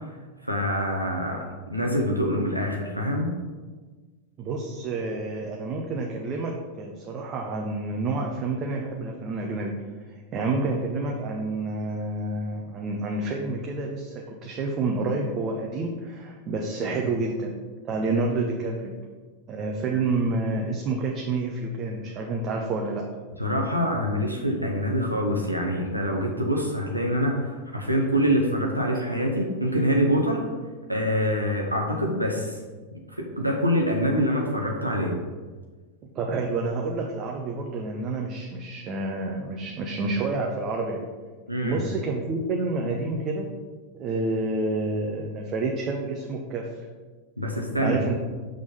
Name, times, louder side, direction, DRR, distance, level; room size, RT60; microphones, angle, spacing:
voice 1, 0.4-1.4 1.7-3.3 16.8-16.9 23.4-30.4 30.9-32.6 33.1-35.2 41.5-41.8 47.4-48.0, equal, 90° right, 0 dB, 0.8 m, -25 dB
voice 2, 4.4-9.8 10.3-17.5 17.8-19.0 19.5-23.1 36.0-41.1 41.6-43.5 43.9-46.7 47.8-48.2, right 3 dB, 30° right, 0 dB, 0.7 m, -29 dB
6.1 x 3.7 x 5.4 m, 1.4 s
figure-of-eight pair, 90°, 0 cm